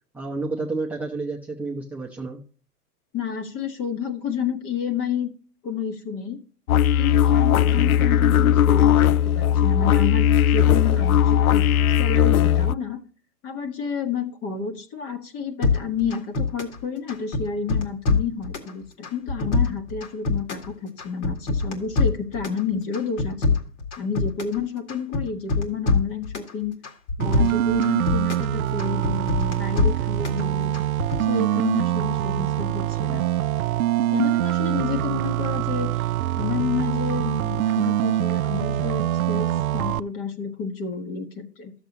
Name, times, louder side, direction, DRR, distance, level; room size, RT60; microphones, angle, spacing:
voice 1, 0.1-2.4, right 3 dB, 5° right, -4 dB, 0.8 m, -30 dB
voice 2, 3.1-5.3 5.6-6.4 7.0-11.7 12.0-13.0 13.4-23.5 24.0-26.8 27.2-30.7 31.2-33.2 34.1-36.0 36.4-41.7, left 6 dB, 30° left, 8 dB, 1.4 m, -30 dB
sound 1, 6.7-12.7, left 10 dB, 65° left, 0.5 m, -18 dB
sound 2, 15.6-16.8 17.1-18.7 19.0-20.7 21.0-22.6 22.9-24.6 24.9-26.5 26.8-28.5 28.8-30.4 30.7-31.2, left 4 dB, 50° left, 2.1 m, -24 dB
sound 3, 27.2-40.0, right 13 dB, 65° right, 0.5 m, -24 dB
13.0 x 7.0 x 2.9 m, 0.40 s
figure-of-eight pair, 115°, 47 cm